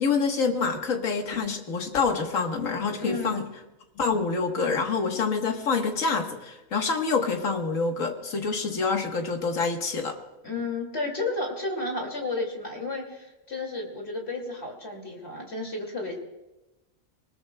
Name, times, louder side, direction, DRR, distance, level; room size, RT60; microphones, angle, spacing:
voice 1, 0.0-3.4 4.0-10.2, left 4 dB, 75° left, 4 dB, 1.7 m, -26 dB
voice 2, 10.4-16.2, left 2 dB, 50° left, 1 dB, 2.7 m, -32 dB
23.5 x 20.0 x 2.2 m, 1.0 s
omnidirectional pair, 1.4 m